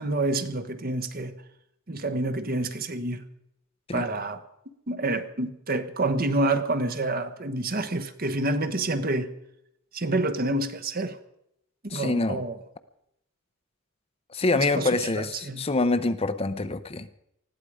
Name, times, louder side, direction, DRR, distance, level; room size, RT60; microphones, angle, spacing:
voice 1, 0.0-1.3 1.9-3.2 3.9-4.4 4.9-9.3 9.9-11.2 11.8-12.6 14.5-15.6, right 2 dB, 45° right, 1.1 m, -28 dB
voice 2, 11.9-12.4 14.3-17.2, left 2 dB, 30° left, 0.7 m, -26 dB
20.0 x 15.0 x 4.9 m
head